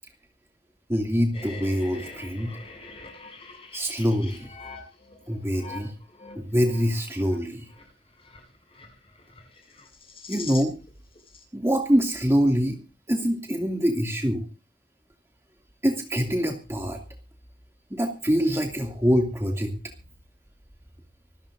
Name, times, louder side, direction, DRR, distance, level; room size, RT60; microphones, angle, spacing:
voice 1, 0.9-2.6 3.7-4.5 5.3-5.9 6.3-7.7 10.3-10.7 11.5-12.8 13.1-14.5 15.8-17.0 17.9-19.7, equal, 15° right, 1 dB, 2.4 m, -24 dB
sound 1, 1.3-10.9 11.1-11.4, left 3 dB, 30° left, 6.7 m, -44 dB
26.0 x 14.0 x 2.6 m, 0.32 s
head